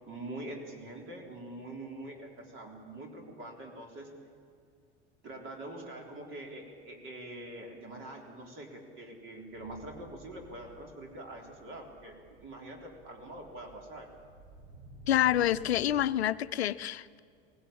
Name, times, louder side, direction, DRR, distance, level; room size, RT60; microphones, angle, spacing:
voice 1, 0.1-4.1 5.2-14.1, right 1 dB, 35° right, 3.9 m, -44 dB
sound 1, 9.4-16.0, right 1 dB, 65° right, 5.9 m, -54 dB
voice 2, 15.1-17.2, left 12 dB, 70° left, 0.7 m, -27 dB
23.5 x 17.5 x 8.8 m
figure-of-eight pair, 75°, 33 cm